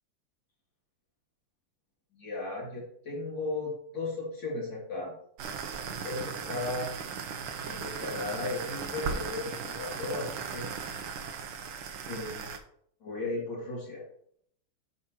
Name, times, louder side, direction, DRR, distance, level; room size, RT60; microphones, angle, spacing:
voice 1, 2.1-5.1 6.0-6.9 7.6-11.0 12.1-12.5 13.0-14.0, left 2 dB, 65° left, -5 dB, 3.1 m, -36 dB
sound 1, 5.4-12.6, right 6 dB, 90° right, 1.6 m, -37 dB
12.0 x 6.2 x 3.0 m, 0.68 s
omnidirectional pair, 2.2 m